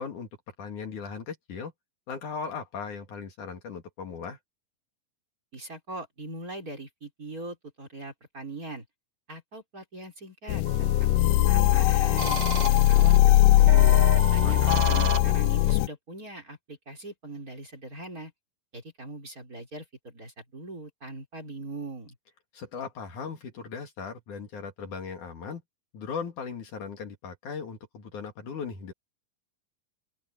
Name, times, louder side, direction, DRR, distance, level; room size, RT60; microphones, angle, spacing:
voice 1, 0.0-1.7 2.1-4.4 14.4-14.7 22.5-25.6 25.9-28.9, left 5 dB, 60° left, 3.5 m, -38 dB
voice 2, 5.5-8.8 9.3-13.8 14.3-18.3 18.7-22.1, right 2 dB, 25° right, 4.7 m, -41 dB
sound 1, 10.5-15.9, left 15 dB, 80° left, 2.0 m, -20 dB
sound 2, 10.7-11.2 12.2-13.2 13.7-15.7, right 4 dB, 40° right, 4.7 m, -34 dB
open air
omnidirectional pair, 4.1 m